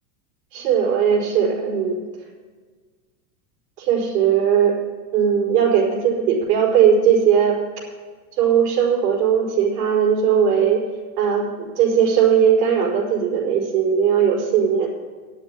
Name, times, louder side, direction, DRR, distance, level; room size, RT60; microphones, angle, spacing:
voice 1, 0.5-2.0 3.8-4.7 5.1-7.6 8.4-10.9 11.2-14.9, right 8 dB, 70° right, -2 dB, 4.2 m, -18 dB
10.5 x 6.7 x 8.7 m, 1.5 s
supercardioid pair, 155°, 49 cm